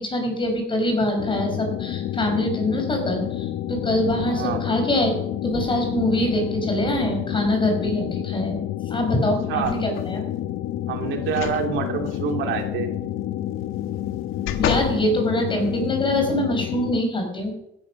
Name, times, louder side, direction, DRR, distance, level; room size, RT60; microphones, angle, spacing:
voice 1, 0.0-5.1 5.4-8.6 8.9-10.2 14.6-17.5, left 1 dB, 25° left, 3 dB, 5.3 m, -24 dB
sound 1, 1.2-17.0, left 12 dB, 60° left, 0.7 m, -29 dB
voice 2, 4.3-4.6 9.5-9.7 10.9-12.9, right 7 dB, 70° right, 3 dB, 2.8 m, -26 dB
sound 2, 9.6-10.2 11.3-11.6 12.1-12.2 13.8-15.0 15.6-15.7, left 9 dB, 80° left, 1.7 m, -29 dB
15.5 x 11.0 x 6.3 m, 0.82 s
cardioid pair, 125°, 21 cm